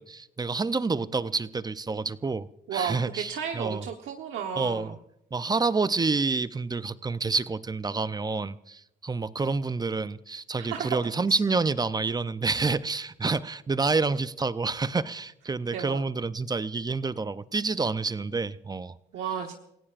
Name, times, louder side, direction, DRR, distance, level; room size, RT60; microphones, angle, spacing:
voice 1, 0.0-3.8 4.6-5.0 5.3-19.0, right 4 dB, 20° right, 0.6 m, -28 dB
voice 2, 2.7-4.9 10.6-10.9 11.3-11.4 15.7-16.0 19.1-19.5, right 7 dB, 75° right, 1.2 m, -33 dB
29.0 x 17.0 x 2.5 m
cardioid pair, 90°, 20 cm